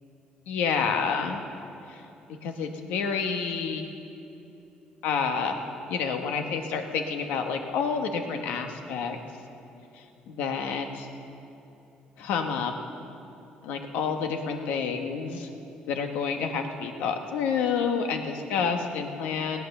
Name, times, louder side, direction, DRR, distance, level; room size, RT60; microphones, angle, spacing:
voice 1, 0.5-1.4 2.4-3.9 5.0-5.6 5.9-9.2 10.3-11.1 12.2-12.7 13.6-15.5 15.8-19.6, left 6 dB, 90° left, 5 dB, 1.4 m, -29 dB
17.5 x 9.4 x 6.8 m, 2.9 s
cardioid pair, 115°, 3 cm